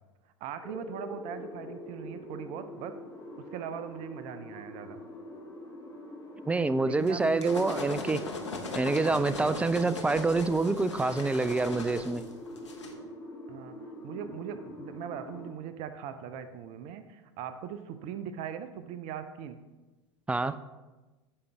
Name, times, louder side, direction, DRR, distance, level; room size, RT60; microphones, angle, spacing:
voice 1, 0.4-3.0 3.4-5.0 6.8-8.0 9.4-9.8 13.5-13.8 14.0-19.6, right 8 dB, 45° right, 10 dB, 0.7 m, -40 dB
sound 1, 0.6-15.5, left 1 dB, 20° left, 2.5 m, -45 dB
voice 2, 6.5-8.2 8.7-12.2 20.3-20.7, right 3 dB, 10° right, 14 dB, 0.4 m, -27 dB
sound 2, 7.1-12.9, left 3 dB, 80° left, 1.2 m, -38 dB
15.5 x 5.3 x 3.3 m, 1.2 s
figure-of-eight pair, 80°, 15 cm